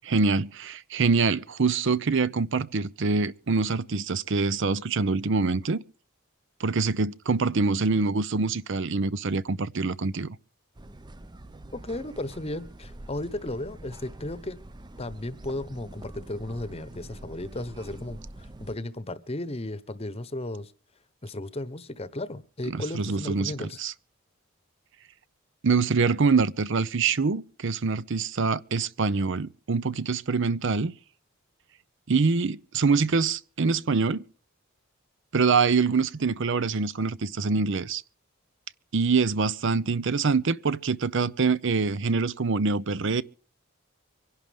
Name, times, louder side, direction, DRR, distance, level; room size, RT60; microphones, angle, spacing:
voice 1, 0.0-5.8 6.6-10.4 22.7-23.9 25.6-30.9 32.1-34.2 35.3-38.0 38.9-43.2, right 4 dB, 60° right, 0.6 m, -25 dB
sound 1, 10.7-18.8, right 1 dB, 20° right, 0.6 m, -45 dB
voice 2, 11.7-14.6 15.0-20.7 21.2-23.8, left 1 dB, 30° left, 1.0 m, -35 dB
25.0 x 11.5 x 3.5 m
head